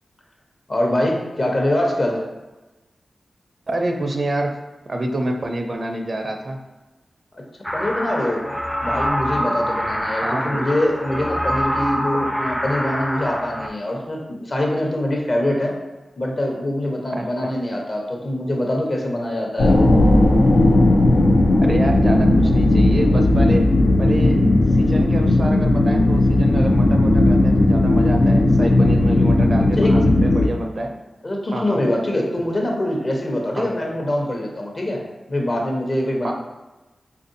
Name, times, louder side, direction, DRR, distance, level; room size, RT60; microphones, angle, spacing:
voice 1, 0.7-2.2 7.3-7.4 7.7-8.4 8.8-15.8 16.2-19.9 29.8-30.2 31.2-35.0 35.3-36.3, left 1 dB, 45° left, 0 dB, 0.9 m, -23 dB
voice 2, 3.7-4.5 4.9-6.6 10.2-10.7 17.2-17.3 21.6-23.6 24.0-30.9 31.5-31.8 33.6-33.7 36.2-36.3, right 1 dB, 55° right, 3 dB, 0.5 m, -27 dB
sound 1, 7.6-13.7, equal, 5° left, 0.4 m, -25 dB
sound 2, 19.6-30.5, left 1 dB, 80° left, 0.5 m, -16 dB
3.6 x 2.5 x 2.6 m, 1.1 s
cardioid pair, 45°, 0 cm